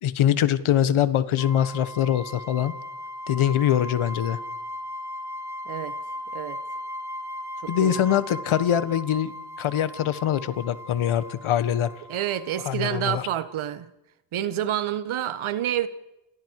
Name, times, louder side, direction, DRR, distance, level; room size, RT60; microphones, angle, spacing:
voice 1, 0.0-2.7 3.3-4.4 7.7-9.3 9.6-11.9 12.6-13.2, left 10 dB, 80° left, 1.7 m, -23 dB
sound 1, 1.4-12.8, left 1 dB, 5° right, 2.8 m, -37 dB
voice 2, 5.6-5.9 6.3-6.6 7.6-8.0 12.1-13.9 14.3-15.9, right 11 dB, 80° right, 1.8 m, -28 dB
29.0 x 28.0 x 4.9 m
cardioid pair, 70°, 48 cm